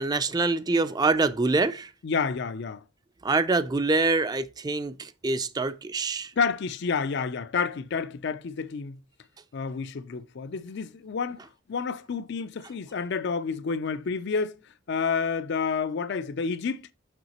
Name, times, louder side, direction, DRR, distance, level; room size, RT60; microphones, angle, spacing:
voice 1, 0.0-1.9 3.2-6.3, right 3 dB, 20° right, 0.4 m, -25 dB
voice 2, 2.0-2.8 6.4-9.0 9.5-14.6 14.9-16.9, left 5 dB, 55° left, 0.4 m, -29 dB
6.7 x 5.6 x 2.9 m
head